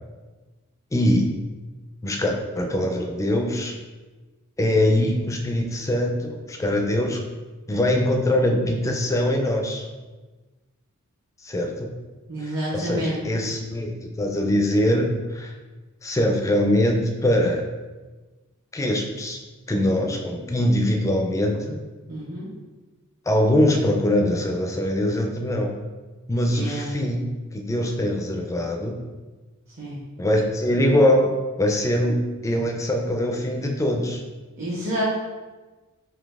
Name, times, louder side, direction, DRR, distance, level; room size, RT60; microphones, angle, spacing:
voice 1, 0.9-1.3 2.0-3.7 4.6-7.2 7.7-9.8 11.4-12.0 12.4-15.5 16.0-17.7 18.7-19.4 19.7-21.8 23.3-25.7 26.3-27.3 27.5-29.0 30.2-34.2, left 1 dB, 15° left, 2 dB, 0.4 m, -22 dB
voice 2, 12.3-13.2 22.1-22.5 26.5-26.9 29.8-30.0 34.6-35.0, equal, 55° right, -7 dB, 1.0 m, -29 dB
3.9 x 2.7 x 3.5 m, 1.2 s
head